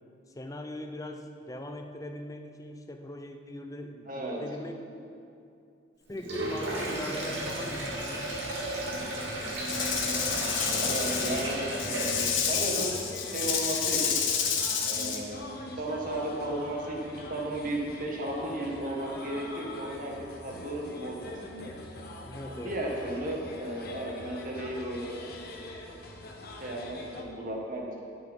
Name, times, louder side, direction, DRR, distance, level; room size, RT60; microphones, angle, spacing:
voice 1, 0.3-5.0 6.1-8.3 22.2-22.8, left 1 dB, 20° left, 5 dB, 0.6 m, -41 dB
voice 2, 4.1-4.4 10.6-13.1 13.3-14.3 14.8-15.5 15.8-21.7 22.5-25.2 26.6-28.0, right 1 dB, 45° right, -1 dB, 1.6 m, -35 dB
Sink (filling or washing), 6.1-13.0, right 1 dB, 80° right, 2.3 m, -34 dB
sound 1, 8.0-27.2, left 2 dB, 55° left, 1.1 m, -44 dB
Rattle / Rattle (instrument), 9.6-15.2, left 7 dB, 85° left, 1.1 m, -29 dB
10.5 x 7.9 x 5.3 m, 2.5 s
head